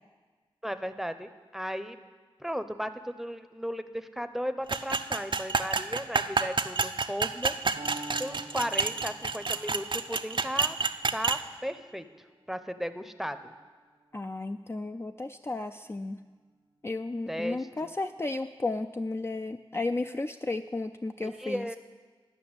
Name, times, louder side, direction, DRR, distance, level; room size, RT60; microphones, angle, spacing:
voice 1, 0.6-2.0 2.4-7.6 8.2-10.8 11.1-12.1 12.5-13.5 17.3-17.9 21.2-21.8, equal, 5° right, 10 dB, 0.7 m, -35 dB
sound 1, 4.7-11.4, right 4 dB, 55° right, 0.5 m, -29 dB
Piano, 7.8-15.7, right 2 dB, 80° right, 1.2 m, -49 dB
voice 2, 14.1-16.2 16.8-21.7, left 2 dB, 25° left, 7 dB, 0.4 m, -33 dB
11.5 x 5.7 x 8.8 m, 1.4 s
cardioid pair, 40°, 10 cm